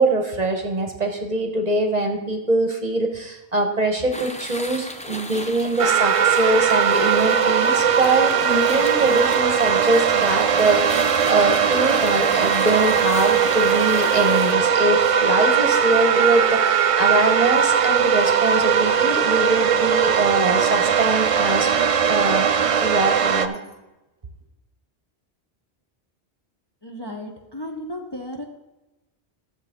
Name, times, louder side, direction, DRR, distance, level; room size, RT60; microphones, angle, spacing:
voice 1, 0.0-21.7 22.1-22.5 22.8-23.6, right 2 dB, 40° right, 4 dB, 1.1 m, -23 dB
sound 1, 4.1-14.5, left 1 dB, 10° left, 0.4 m, -35 dB
sound 2, 5.8-23.5, right 7 dB, 60° right, 0.3 m, -19 dB
voice 2, 26.8-28.4, left 1 dB, 25° left, 0 dB, 0.8 m, -34 dB
13.5 x 7.1 x 3.6 m, 1.0 s
omnidirectional pair, 1.1 m